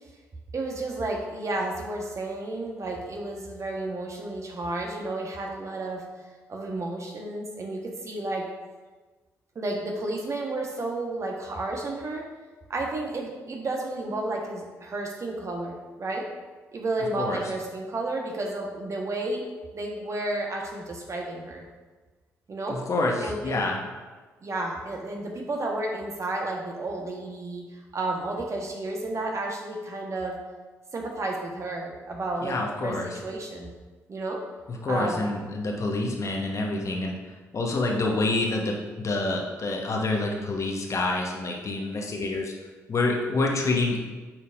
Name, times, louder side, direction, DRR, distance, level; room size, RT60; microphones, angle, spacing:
voice 1, 0.5-8.4 9.5-12.2 12.7-16.3 16.7-19.4 19.7-21.6 22.5-22.8 23.2-23.6 24.4-30.4 30.9-33.7 34.1-34.4 34.8-35.3, right 2 dB, 40° right, 0 dB, 1.4 m, -32 dB
voice 2, 22.7-23.8 32.4-33.2 34.7-42.5 42.9-44.0, left 2 dB, 40° left, 0 dB, 1.3 m, -27 dB
8.9 x 6.3 x 2.7 m, 1.3 s
figure-of-eight pair, 40°, 8 cm